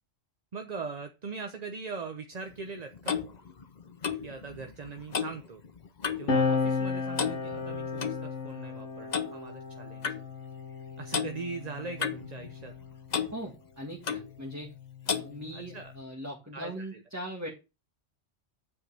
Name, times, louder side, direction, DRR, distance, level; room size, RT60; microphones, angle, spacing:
voice 1, 0.5-3.2 4.2-5.6 6.2-10.2 11.0-12.7 15.5-15.9 16.5-17.0, right 4 dB, 40° right, 6 dB, 0.8 m, -41 dB
Clock, 2.5-6.4 6.6-6.9 7.1-8.2 9.1-9.3 10.0-10.2 11.1-11.3 12.0-12.8 13.1-13.3 14.0-14.3 15.1-15.3, left 6 dB, 40° left, 0.8 m, -33 dB
sound 1, 6.3-13.2 14.2-16.0, left 4 dB, 75° left, 1.4 m, -34 dB
voice 2, 13.3-14.7 15.1-17.5, equal, 15° right, -1 dB, 1.7 m, -40 dB
9.6 x 7.7 x 3.4 m, 0.28 s
omnidirectional pair, 1.2 m